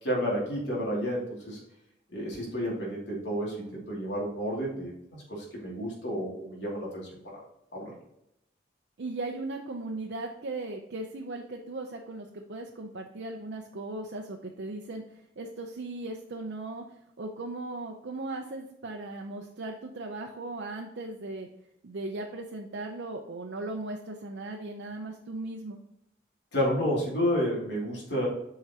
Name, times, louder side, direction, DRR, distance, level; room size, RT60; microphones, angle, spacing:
voice 1, 0.0-1.6 2.1-7.2 7.7-7.9 26.5-28.3, equal, 90° left, -4 dB, 2.5 m, -31 dB
voice 2, 9.0-15.0 15.4-16.8 17.2-21.5 21.8-25.8, right 2 dB, 85° right, 1 dB, 0.6 m, -37 dB
8.0 x 4.8 x 2.8 m, 0.79 s
head